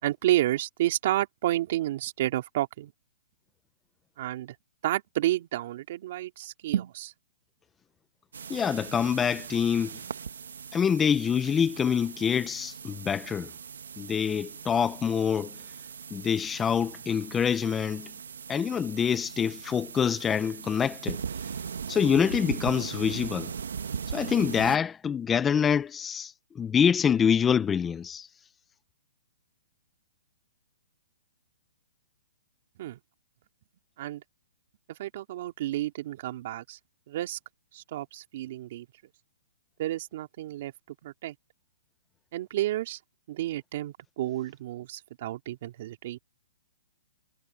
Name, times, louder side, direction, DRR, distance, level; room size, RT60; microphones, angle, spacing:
voice 1, 0.0-2.9 4.2-4.5 4.8-7.1 32.8-33.0 34.0-34.2 34.9-36.8 37.1-37.4 37.7-38.9 39.8-41.4 42.3-43.0 43.3-46.2, right 14 dB, 45° right, 2.5 m, -30 dB
sound 1, 8.3-24.8, right 6 dB, 85° right, 1.5 m, -39 dB
voice 2, 8.5-10.0 10.7-13.5 14.0-15.6 16.1-18.1 18.5-21.2 21.9-23.5 24.1-28.3, left 7 dB, 10° left, 0.7 m, -26 dB
hypercardioid pair, 160°, 0 cm